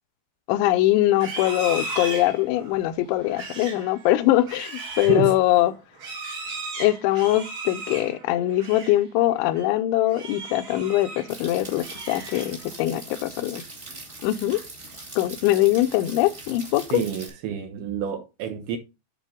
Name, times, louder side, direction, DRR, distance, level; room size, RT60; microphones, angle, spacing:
voice 1, 0.5-5.7 6.8-13.6 14.2-14.6 15.2-17.0, left 15 dB, 85° left, 3.1 m, -22 dB
Livestock farm animals working animals, 1.1-9.0 9.4-9.7 10.1-11.3 11.7-12.7, right 3 dB, 60° right, 1.3 m, -37 dB
sound 1, 11.3-17.3, right 2 dB, 25° right, 1.7 m, -41 dB
voice 2, 16.9-18.8, right 7 dB, 75° right, 3.4 m, -28 dB
10.0 x 4.6 x 3.6 m
omnidirectional pair, 5.3 m